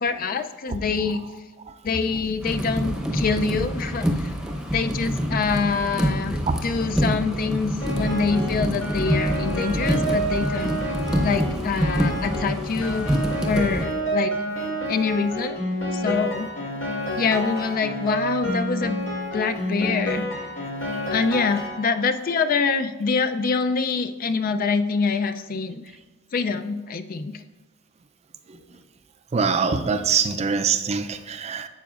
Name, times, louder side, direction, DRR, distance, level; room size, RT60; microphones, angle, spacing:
voice 1, 0.0-1.2 1.8-4.3 4.7-13.1 13.4-14.3 14.9-15.6 15.9-16.5 17.2-19.0 19.3-20.3 21.1-25.9 26.3-27.4, left 4 dB, 45° left, 9 dB, 0.4 m, -25 dB
sound 1, 2.4-13.8, equal, 5° right, 0.8 m, -26 dB
Piano, 7.8-22.2, equal, 90° left, 2.5 m, -29 dB
voice 2, 29.3-31.7, right 5 dB, 35° right, 10 dB, 0.4 m, -23 dB
11.5 x 7.9 x 2.5 m, 1.2 s
head